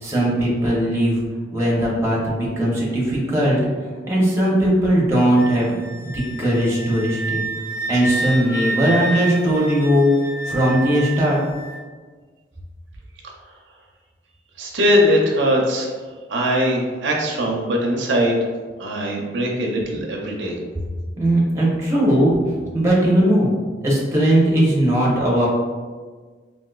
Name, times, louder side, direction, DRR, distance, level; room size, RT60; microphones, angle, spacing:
voice 1, 0.0-1.2 1.5-3.6 4.1-7.4 7.9-10.1 10.5-11.4 21.2-22.3 22.7-23.5 23.8-25.5, right 1 dB, 15° right, -5 dB, 0.7 m, -18 dB
Wind instrument woodwind instrument, 5.3-11.7, right 2 dB, 55° left, 0.8 m, -29 dB
voice 2, 14.6-15.9 16.3-18.5 18.8-20.6, equal, 85° right, 0 dB, 0.5 m, -20 dB
3.6 x 2.5 x 2.3 m, 1.5 s
head